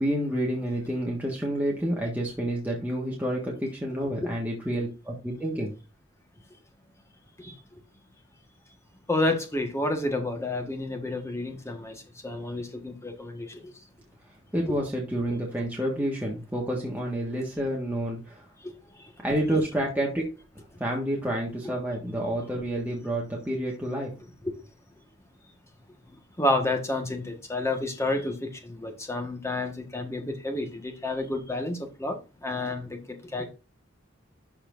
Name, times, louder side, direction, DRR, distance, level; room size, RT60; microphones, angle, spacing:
voice 1, 0.0-5.7 14.5-18.4 19.2-20.3 20.8-24.1, right 1 dB, 10° right, 1.5 m, -29 dB
voice 2, 9.1-13.7 18.6-18.7 19.0-19.1 21.6-21.7 26.4-33.5, left 2 dB, 15° left, 1.3 m, -30 dB
12.0 x 4.2 x 2.5 m
head